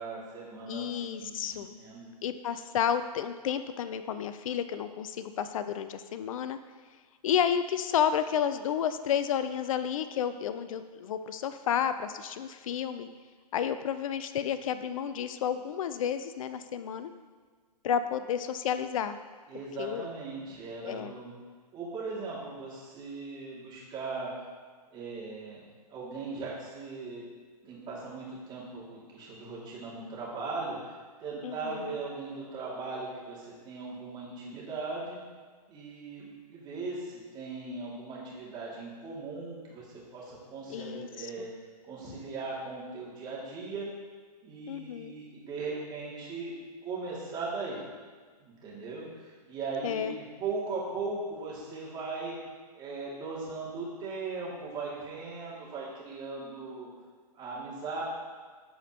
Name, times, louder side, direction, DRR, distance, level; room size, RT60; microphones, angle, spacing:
voice 1, 0.0-2.1 19.5-21.3 21.7-24.3 24.9-25.6 25.9-27.2 27.6-35.2 35.7-41.5 41.8-43.9 44.4-46.5 46.8-47.8 48.4-52.4 52.7-56.9 57.3-58.0, right 3 dB, 20° right, -5 dB, 2.5 m, -38 dB
voice 2, 0.7-1.7 2.2-6.6 7.2-13.1 13.5-17.1 17.8-19.2 19.8-20.1 20.8-21.1 31.4-32.0 40.7-41.3 44.7-45.1 49.8-50.1, left 8 dB, 55° left, 11 dB, 0.6 m, -31 dB
14.0 x 5.0 x 2.9 m, 1.5 s
hypercardioid pair, 135°, 21 cm